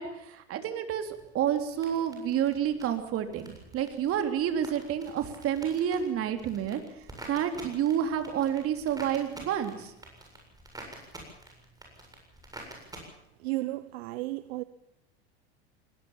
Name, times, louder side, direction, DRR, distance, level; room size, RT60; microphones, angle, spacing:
voice 1, 0.0-6.8 7.3-9.9, right 9 dB, 45° right, 3.4 m, -29 dB
sound 1, 1.0-13.0, right 1 dB, 10° right, 7.6 m, -49 dB
voice 2, 13.4-14.6, right 19 dB, 70° right, 1.0 m, -33 dB
20.0 x 18.5 x 7.4 m
hypercardioid pair, 105°, 32 cm